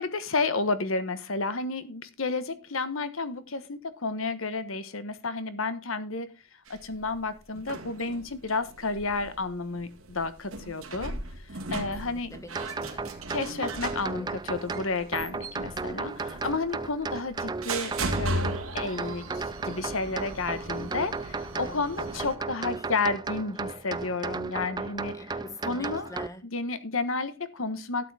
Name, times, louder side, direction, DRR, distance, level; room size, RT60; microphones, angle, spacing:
voice 1, 0.0-6.4 6.7-11.1 11.7-12.3 13.3-25.2 25.7-26.1 26.5-28.1, left 3 dB, 75° left, 1.3 m, -31 dB
sound 1, 6.7-22.4, right 1 dB, 85° right, 1.9 m, -38 dB
voice 2, 12.0-13.1 14.1-14.5 21.5-22.0 22.4-22.5 22.8-22.9 25.1-26.4, left 1 dB, 15° left, 1.3 m, -45 dB
sound 2, 12.5-26.3, right 4 dB, 20° right, 0.4 m, -35 dB
12.0 x 8.9 x 3.5 m
head